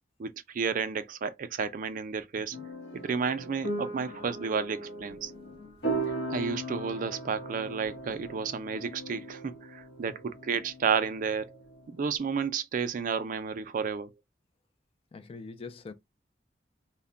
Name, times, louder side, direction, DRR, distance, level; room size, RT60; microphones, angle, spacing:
voice 1, 0.2-2.6 2.9-5.3 6.3-11.6 11.9-14.1, right 6 dB, 50° right, 0.4 m, -32 dB
sound 1, 2.5-12.2, right 2 dB, 70° left, 0.9 m, -38 dB
voice 2, 15.1-15.9, left 4 dB, 35° left, 0.3 m, -44 dB
2.1 x 2.1 x 3.7 m
head